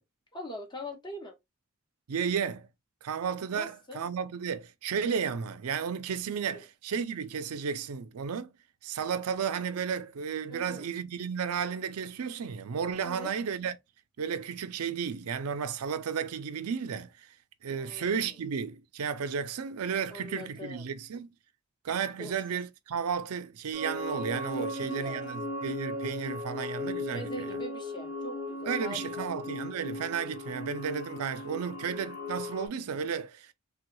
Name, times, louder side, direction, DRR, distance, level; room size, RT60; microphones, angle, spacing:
voice 1, 0.3-1.3 3.5-4.1 6.5-6.6 10.5-10.8 13.0-13.3 17.8-18.3 20.1-20.9 22.2-22.3 24.6-25.2 27.1-29.3, left 1 dB, 20° left, 0.8 m, -42 dB
voice 2, 2.1-2.7 3.0-8.5 8.8-13.7 14.2-17.3 17.6-21.3 21.8-27.5 28.7-33.5, right 6 dB, 85° right, 0.5 m, -33 dB
sound 1, 23.7-32.7, left 1 dB, 60° left, 1.0 m, -37 dB
3.4 x 2.2 x 2.9 m
head